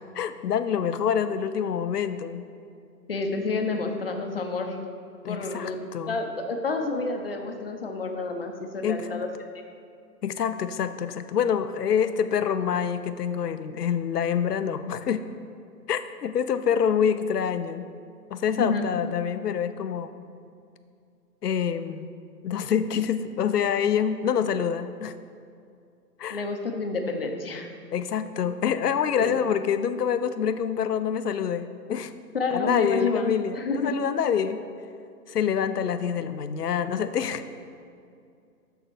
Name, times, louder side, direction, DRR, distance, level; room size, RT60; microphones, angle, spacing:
voice 1, 0.1-2.4 5.2-6.2 8.8-9.2 10.2-15.2 15.9-17.9 18.3-20.2 21.4-22.1 22.4-25.1 26.2-26.4 27.9-32.1 32.5-34.6 35.3-37.4, left 8 dB, 70° left, 11 dB, 0.7 m, -26 dB
voice 2, 3.1-4.8 5.3-9.3 18.5-18.8 26.3-27.7 29.2-29.4 32.3-33.9, left 3 dB, 35° left, 4 dB, 0.7 m, -29 dB
6.8 x 6.6 x 6.1 m, 2.4 s
hypercardioid pair, 170°, 49 cm